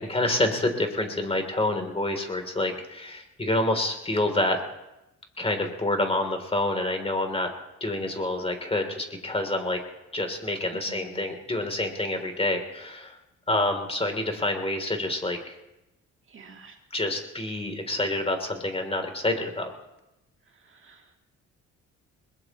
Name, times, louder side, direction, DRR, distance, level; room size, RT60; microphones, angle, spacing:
voice 1, 0.1-4.6 5.4-7.5 7.8-9.8 10.1-13.2 13.5-15.6 16.9-19.7, left 1 dB, 20° left, 5 dB, 3.2 m, -27 dB
voice 2, 10.7-11.2 16.3-16.8 20.7-21.0, right 4 dB, 40° right, 3 dB, 2.0 m, -47 dB
21.5 x 21.0 x 3.1 m, 0.92 s
cardioid pair, 90°, 30 cm